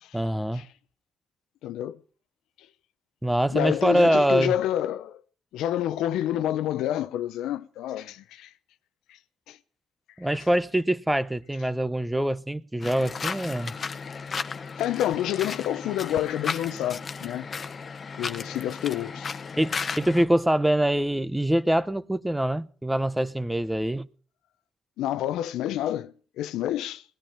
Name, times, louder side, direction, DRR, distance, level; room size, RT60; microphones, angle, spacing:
voice 1, 0.1-0.7 3.2-4.5 10.2-13.7 19.6-24.1, right 1 dB, 5° right, 0.8 m, -24 dB
voice 2, 1.6-2.0 3.5-5.2 5.5-8.5 9.5-9.6 14.8-17.5 18.2-19.4 25.0-27.0, left 12 dB, 90° left, 0.7 m, -28 dB
sound 1, 12.8-20.2, left 5 dB, 40° left, 1.1 m, -35 dB
19.0 x 10.5 x 5.5 m
cardioid pair, 90°, 0 cm